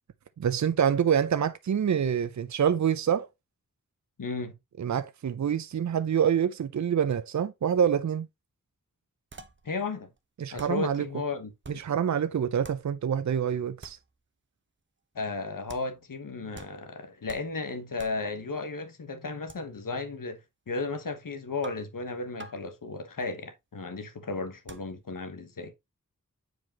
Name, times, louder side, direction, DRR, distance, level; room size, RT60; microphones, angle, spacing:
voice 1, 0.4-3.3 4.8-8.3 10.4-11.1 11.7-14.0, right 8 dB, 60° right, 0.5 m, -26 dB
voice 2, 4.2-4.5 9.6-10.1 10.5-11.5 15.1-20.4 20.7-25.8, left 3 dB, 85° left, 1.1 m, -34 dB
sound 1, 9.3-9.8 10.2-10.3 10.6-10.9 11.6-12.0 12.6-13.0 13.8-14.2 15.7-16.0 16.5-16.9 17.3-17.6 18.0-18.3 19.5-19.6 21.6-22.0 22.4-22.6 23.2-23.4 24.7-25.0, right 3 dB, 35° right, 0.8 m, -48 dB
7.9 x 4.8 x 2.8 m
wide cardioid pair, 60°, 32 cm